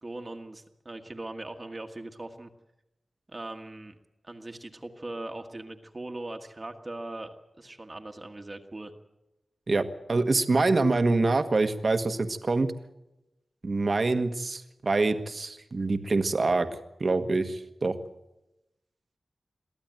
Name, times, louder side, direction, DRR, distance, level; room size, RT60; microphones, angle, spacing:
voice 1, 0.0-2.5 3.3-4.0 4.2-8.9, right 2 dB, 30° right, 5 dB, 1.5 m, -40 dB
voice 2, 9.7-12.7 13.6-16.7 17.0-18.0, right 3 dB, 50° right, 9 dB, 1.4 m, -25 dB
23.0 x 14.5 x 9.1 m, 0.93 s
wide cardioid pair, 100°, 0 cm